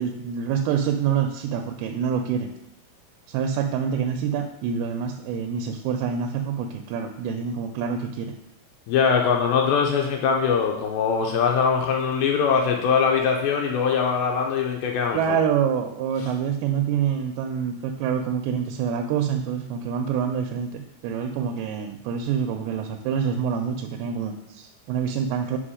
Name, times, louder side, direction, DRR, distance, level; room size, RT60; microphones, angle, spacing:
voice 1, 0.0-2.5 3.3-8.3 15.1-25.6, right 7 dB, 85° right, 4 dB, 2.5 m, -26 dB
voice 2, 8.9-15.4, left 6 dB, 80° left, 1 dB, 2.4 m, -22 dB
5.6 x 5.4 x 4.9 m, 0.79 s
omnidirectional pair, 4.4 m